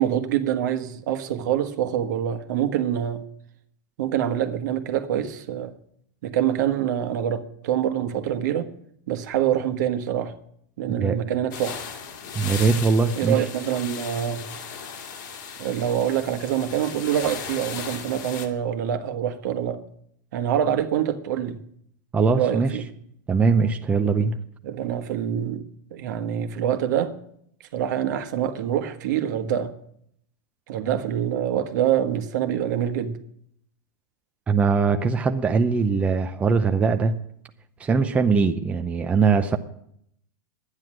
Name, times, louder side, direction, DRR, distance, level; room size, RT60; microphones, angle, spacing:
voice 1, 0.0-3.2 4.0-5.7 6.2-8.7 9.1-10.3 10.8-11.8 13.2-14.5 15.6-19.8 20.3-21.6 22.4-22.8 24.6-25.6 25.9-27.2 27.7-29.7 30.7-33.2, right 10 dB, 70° right, 1.4 m, -25 dB
sound 1, 11.5-18.5, left 7 dB, 75° left, 2.2 m, -37 dB
voice 2, 12.3-13.4 22.1-22.7 23.3-24.4 34.5-37.2 37.8-39.6, right 5 dB, 15° right, 0.6 m, -21 dB
11.0 x 9.8 x 7.5 m
supercardioid pair, 145°, 10 cm